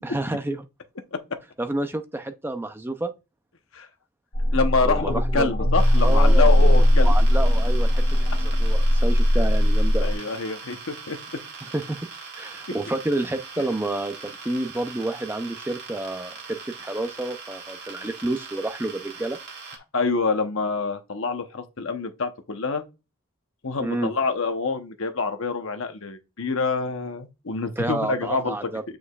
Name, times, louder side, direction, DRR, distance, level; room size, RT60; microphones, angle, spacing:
voice 1, 0.0-0.6 1.6-3.1 4.9-5.5 6.0-10.1 11.6-12.1 12.4-19.4 23.8-24.1 27.8-28.8, right 2 dB, 10° right, 0.4 m, -29 dB
sound 1, 4.3-10.1, equal, 45° left, 2.1 m, -19 dB
voice 2, 4.5-7.1 10.0-11.2 19.9-22.8 23.6-28.7, left 4 dB, 60° left, 0.9 m, -26 dB
sound 2, 5.8-19.8, right 4 dB, 55° right, 2.0 m, -41 dB
8.6 x 4.7 x 2.4 m
head